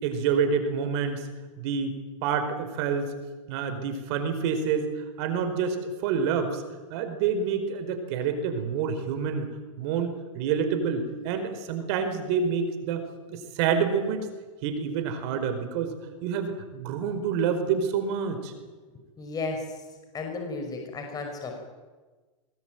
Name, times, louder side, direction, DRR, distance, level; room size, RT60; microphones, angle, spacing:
voice 1, 0.0-1.3 1.6-3.1 3.5-6.6 6.9-9.5 9.8-14.3 14.6-15.9 16.2-18.5, right 6 dB, 55° right, 8 dB, 4.6 m, -28 dB
voice 2, 19.2-19.7 20.1-21.6, left 3 dB, 20° left, 3 dB, 6.0 m, -33 dB
23.0 x 20.5 x 9.2 m, 1.3 s
hypercardioid pair, 125°, 17 cm